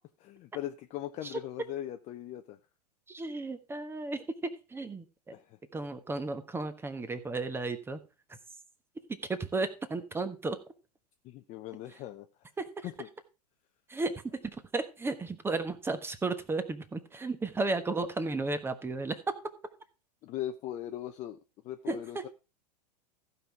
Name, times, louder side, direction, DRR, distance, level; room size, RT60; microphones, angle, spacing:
voice 1, 0.2-2.6 5.3-5.6 11.2-12.3 13.0-13.1 20.2-21.4 21.6-22.3, left 12 dB, 35° left, 6 dB, 0.7 m, -39 dB
voice 2, 3.1-5.3 5.7-8.0 9.3-10.6 12.6-12.7 13.9-19.3 21.9-22.2, right 3 dB, 10° right, 10 dB, 1.3 m, -34 dB
14.5 x 5.6 x 4.7 m, 0.32 s
hypercardioid pair, 100°, 21 cm